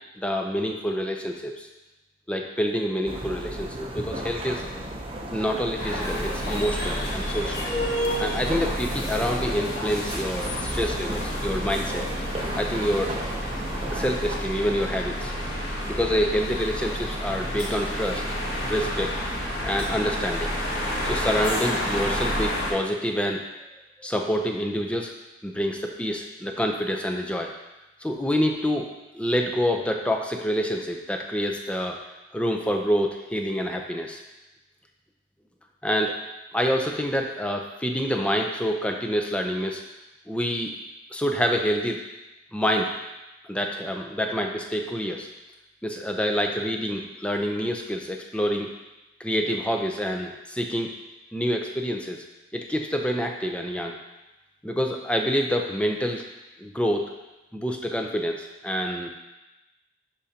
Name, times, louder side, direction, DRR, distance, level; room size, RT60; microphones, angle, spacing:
voice 1, 0.2-1.7 2.3-4.9 5.3-7.7 8.2-12.0 12.6-13.1 13.9-15.3 15.8-18.2 18.7-19.2 19.6-20.6 21.0-23.4 24.0-25.1 25.4-27.5 28.0-28.9 29.1-32.0 32.3-34.2 35.8-36.1 36.5-39.8 40.3-40.7 41.1-42.0 42.5-42.9 43.5-45.3 45.8-48.7 49.2-50.9 51.3-52.2 52.5-54.0 54.6-56.2 56.6-57.1 57.5-59.1, equal, 5° left, 2 dB, 0.6 m, -27 dB
sound 1, 3.0-14.5, right 1 dB, 30° right, 0.7 m, -36 dB
sound 2, 5.8-22.7, equal, 45° left, 2.8 m, -29 dB
11.0 x 5.0 x 2.9 m, 1.0 s
head